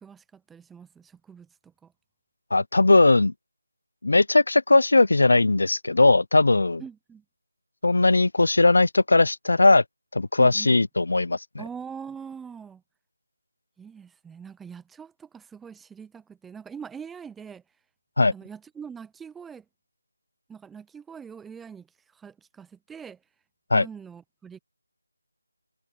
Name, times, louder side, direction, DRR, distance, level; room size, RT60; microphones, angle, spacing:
voice 1, 0.0-1.9 6.8-7.2 10.4-10.7 11.6-12.8 13.8-17.6 18.3-19.6 20.5-21.9 22.1-23.2 23.7-24.6, right 6 dB, 5° right, 0.6 m, -43 dB
voice 2, 2.5-3.3 4.0-6.8 7.8-9.8 10.1-11.4 18.2-18.3 23.7-23.9, left 2 dB, 65° left, 0.7 m, -19 dB
figure-of-eight pair, 170°, 0 cm